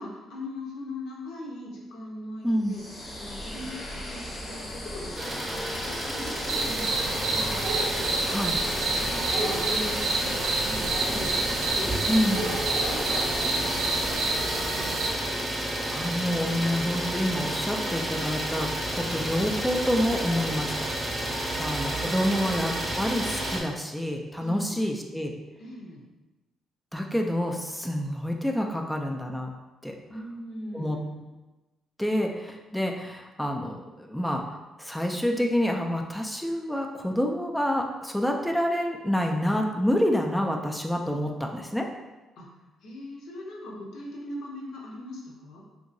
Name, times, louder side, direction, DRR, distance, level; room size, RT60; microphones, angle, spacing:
voice 1, 0.0-2.8 3.1-8.5 8.9-15.5 21.3-21.4 24.4-24.8 25.6-26.0 30.1-31.2 42.4-42.5 42.8-45.6, left 1 dB, 80° left, -3 dB, 0.7 m, -40 dB
voice 2, 2.4-2.7 8.3-8.6 12.1-12.5 15.9-20.9 21.6-25.4 26.9-29.5 29.8-30.0 30.7-31.0 32.0-41.9, equal, 5° left, 2 dB, 0.3 m, -28 dB
sound 1, 2.6-15.3, left 1 dB, 35° left, 0.7 m, -38 dB
Idling, 5.2-23.6, right 1 dB, 15° right, 0.7 m, -31 dB
sound 2, 6.5-15.1, right 3 dB, 85° right, 0.4 m, -29 dB
2.9 x 2.6 x 2.6 m, 1.1 s
cardioid pair, 90°, 0 cm